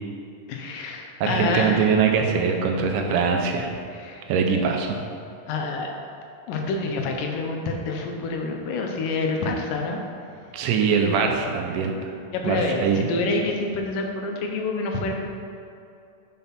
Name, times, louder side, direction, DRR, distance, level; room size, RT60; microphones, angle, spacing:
voice 1, 0.5-2.0 3.9-4.2 5.5-5.9 6.5-10.0 12.3-15.1, left 3 dB, 85° left, 2 dB, 2.5 m, -27 dB
voice 2, 1.2-3.7 4.3-5.0 10.5-11.9 12.4-13.1, right 6 dB, 85° right, 3 dB, 2.3 m, -22 dB
5.5 x 5.3 x 5.8 m, 2.6 s
omnidirectional pair, 3.7 m